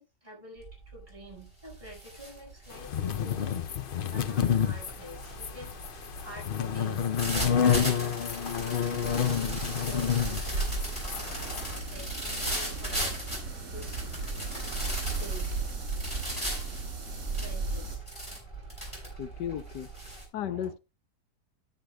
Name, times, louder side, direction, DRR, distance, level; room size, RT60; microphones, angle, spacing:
voice 1, 0.0-8.2 9.7-10.8 11.9-13.2 13.7-14.1 15.2-15.5 17.3-18.0 20.3-20.7, equal, 25° right, 6.3 m, -48 dB
sound 1, 0.6-0.9 1.3-20.2, right 1 dB, 15° left, 6.3 m, -38 dB
sound 2, 2.8-11.8, left 8 dB, 65° left, 0.5 m, -29 dB
sound 3, 9.0-18.0, right 3 dB, 55° right, 3.2 m, -35 dB
voice 2, 19.2-19.9 20.3-20.8, left 10 dB, 80° left, 1.5 m, -34 dB
18.5 x 6.5 x 2.3 m
omnidirectional pair, 1.8 m